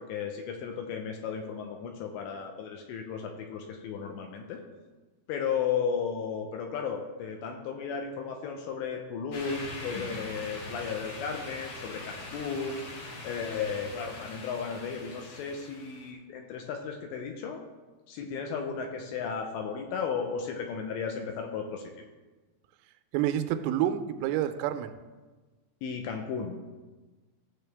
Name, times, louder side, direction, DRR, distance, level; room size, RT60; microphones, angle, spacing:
voice 1, 0.0-4.6 5.3-12.8 13.2-17.6 18.1-22.1 25.8-26.5, left 6 dB, 80° left, 3 dB, 2.7 m, -34 dB
sound 1, 9.3-16.1, left 2 dB, 60° left, 2.5 m, -42 dB
voice 2, 23.1-24.9, right 11 dB, 90° right, 8 dB, 3.2 m, -28 dB
15.0 x 7.1 x 3.4 m, 1.3 s
omnidirectional pair, 5.7 m